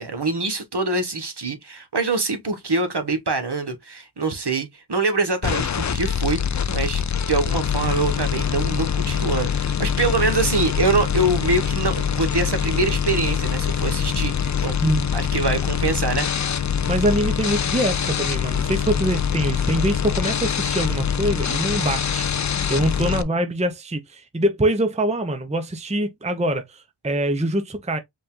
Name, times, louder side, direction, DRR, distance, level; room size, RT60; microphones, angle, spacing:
voice 1, 0.0-14.8 15.1-16.3, right 3 dB, 55° right, 1.3 m, -24 dB
sound 1, 5.4-23.2, left 7 dB, 40° left, 0.4 m, -24 dB
voice 2, 16.8-22.3 22.7-28.0, right 1 dB, 15° right, 0.7 m, -24 dB
5.3 x 2.5 x 3.7 m
wide cardioid pair, 60°, 50 cm